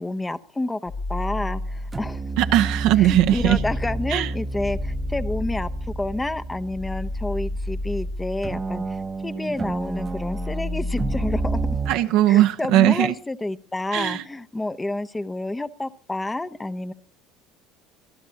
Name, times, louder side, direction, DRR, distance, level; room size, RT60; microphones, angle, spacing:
voice 1, 0.0-2.2 3.0-11.8 12.3-16.9, left 2 dB, 15° left, 0.8 m, -29 dB
sound 1, 0.9-2.3 2.7-9.2 9.5-11.8, left 1 dB, 45° left, 1.4 m, -32 dB
sound 2, 1.6-1.7 1.9-8.1 8.4-11.9, right 3 dB, 25° right, 0.9 m, -31 dB
voice 2, 2.4-3.6 4.1-4.3 11.9-13.1 13.9-14.2, right 13 dB, 70° right, 0.9 m, -19 dB
25.5 x 12.0 x 2.9 m
supercardioid pair, 85°, 0 cm